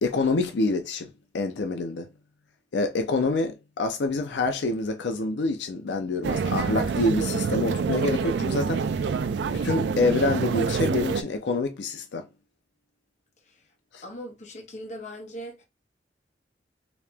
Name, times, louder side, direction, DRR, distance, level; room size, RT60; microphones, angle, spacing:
voice 1, 0.0-2.1 2.7-8.8 9.5-12.3 13.9-14.0, left 3 dB, 85° left, 0.5 m, -27 dB
sound 1, 6.2-11.2, right 5 dB, 75° right, 0.3 m, -26 dB
voice 2, 14.0-15.6, equal, 40° left, 0.9 m, -40 dB
3.1 x 2.8 x 3.3 m
head